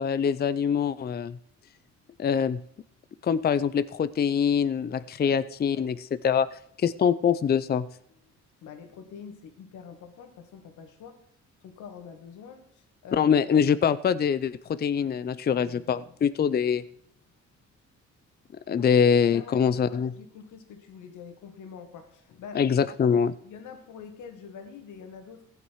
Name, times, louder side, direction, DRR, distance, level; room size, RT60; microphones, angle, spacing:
voice 1, 0.0-1.4 2.2-2.6 3.2-6.5 6.8-7.9 13.2-16.8 18.7-20.1 22.5-23.3, left 7 dB, 35° left, 15 dB, 0.5 m, -24 dB
voice 2, 8.6-11.2 11.6-13.3 18.7-18.9 19.3-22.7 23.4-25.5, left 6 dB, 80° left, 6 dB, 1.9 m, -45 dB
15.0 x 9.2 x 4.7 m, 0.66 s
cardioid pair, 90°, 30 cm